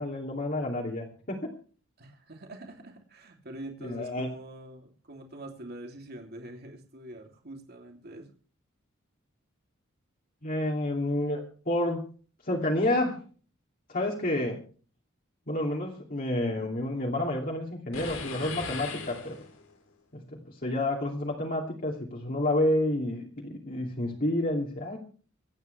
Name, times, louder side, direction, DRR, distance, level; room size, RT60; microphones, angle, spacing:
voice 1, 0.0-1.5 3.8-4.3 10.4-12.1 12.4-13.2 13.9-14.6 15.5-19.3 20.1-25.0, left 1 dB, 45° left, -1 dB, 2.8 m, -29 dB
voice 2, 2.0-8.3, right 1 dB, 50° right, 2 dB, 3.1 m, -44 dB
sound 1, 17.9-19.8, left 4 dB, 85° left, 4.1 m, -38 dB
26.5 x 9.5 x 3.4 m, 0.40 s
head